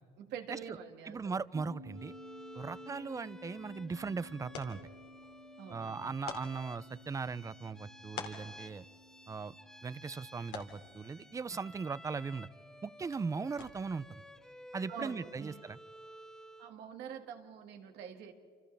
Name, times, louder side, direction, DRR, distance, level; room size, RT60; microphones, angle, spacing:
voice 1, 0.2-1.4 5.6-6.0 14.9-15.5 16.6-18.3, right 7 dB, 80° right, 4 dB, 2.0 m, -45 dB
voice 2, 1.1-2.1 2.5-4.8 5.7-8.8 9.3-9.5 9.8-12.5 12.8-14.2 14.7-15.8, right 4 dB, 20° right, 18 dB, 0.4 m, -39 dB
sound 1, 1.5-14.3, left 1 dB, 55° right, 1.2 m, -56 dB
Bowed string instrument, 1.9-16.8, equal, 5° left, 1.5 m, -54 dB
sound 2, 3.4-14.1, left 7 dB, 85° left, 2.6 m, -52 dB
27.5 x 27.5 x 3.4 m, 2.2 s
cardioid pair, 110°, 17 cm